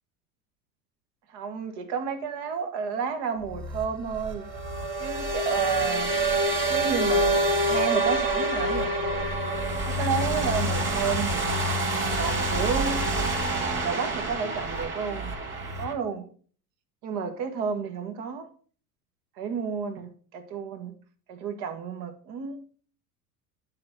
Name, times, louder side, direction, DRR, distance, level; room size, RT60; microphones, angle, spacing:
voice 1, 1.3-4.5 5.0-6.1 6.7-9.4 9.9-11.5 12.2-13.1 13.5-15.4 15.8-16.3 17.0-18.5 19.4-20.9 21.3-22.6, right 6 dB, 55° right, 2.0 m, -31 dB
sound 1, 3.5-15.9, right 1 dB, 25° right, 2.8 m, -27 dB
10.5 x 5.6 x 5.9 m
hypercardioid pair, 85°, 48 cm